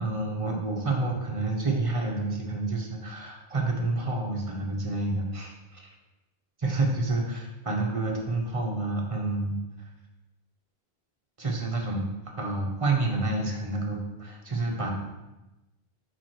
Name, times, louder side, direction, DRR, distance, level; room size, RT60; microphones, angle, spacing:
voice 1, 0.0-5.9 6.6-9.9 11.4-12.0 12.4-14.9, right 2 dB, 35° right, 0 dB, 1.2 m, -29 dB
5.0 x 4.8 x 6.2 m, 1.0 s
omnidirectional pair, 1.0 m